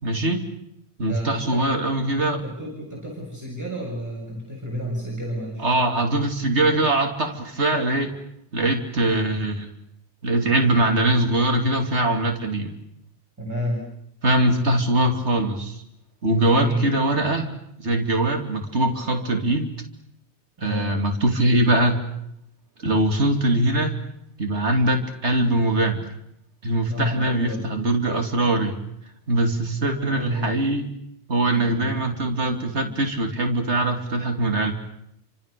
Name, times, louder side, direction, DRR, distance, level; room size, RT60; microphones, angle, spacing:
voice 1, 0.0-0.4 1.0-2.4 5.6-8.1 8.5-9.7 10.2-12.7 14.2-15.8 16.2-17.5 17.8-19.7 20.6-22.0 22.8-23.9 24.4-26.1 26.6-28.8 29.3-30.9 31.3-34.7, right 1 dB, 80° right, 4 dB, 3.2 m, -22 dB
voice 2, 1.0-1.7 2.2-5.7 13.4-13.9 16.5-16.8 20.6-20.9 26.9-27.7 29.8-30.6 31.5-32.1, equal, 15° right, -3 dB, 7.8 m, -31 dB
30.0 x 26.5 x 6.9 m, 0.76 s
omnidirectional pair, 1.1 m